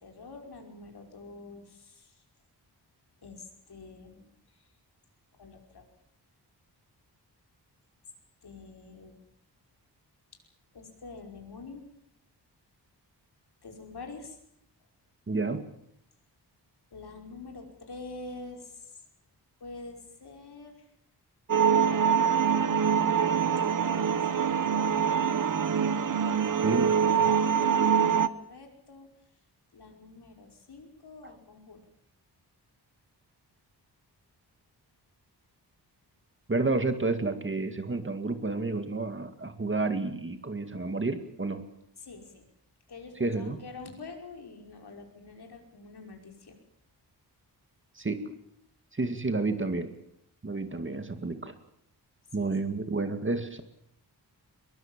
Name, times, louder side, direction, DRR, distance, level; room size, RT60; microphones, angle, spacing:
voice 1, 0.0-2.2 3.2-4.3 4.6-4.7 5.3-5.8 8.4-9.2 10.7-11.8 13.6-14.4 16.9-19.0 19.6-20.9 23.9-25.3 26.3-29.1 29.7-31.8 42.0-42.5 42.9-46.6 52.4-52.5, left 3 dB, 65° left, 3 dB, 5.4 m, -46 dB
voice 2, 15.3-15.7 26.6-26.9 27.2-27.3 36.5-41.6 43.2-43.6 48.0-48.3 48.9-49.9 50.4-51.5 52.3-53.6, right 3 dB, 30° right, 8 dB, 2.1 m, -30 dB
sound 1, 21.5-28.3, right 7 dB, 50° right, 1.0 m, -24 dB
23.0 x 22.5 x 7.3 m, 0.71 s
wide cardioid pair, 120°, 41 cm